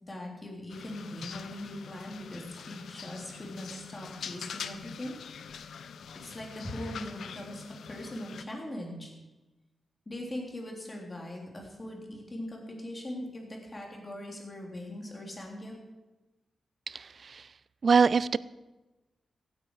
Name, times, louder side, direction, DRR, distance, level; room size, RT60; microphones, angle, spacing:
voice 1, 0.0-5.2 6.2-9.1 10.1-15.7, left 1 dB, 30° left, 0 dB, 3.4 m, -40 dB
sound 1, 0.7-8.4, left 7 dB, 90° left, 0.6 m, -44 dB
voice 2, 16.9-17.5 17.8-18.4, right 5 dB, 55° right, 19 dB, 0.4 m, -24 dB
15.5 x 9.3 x 4.8 m, 1.1 s
cardioid pair, 85°, 0 cm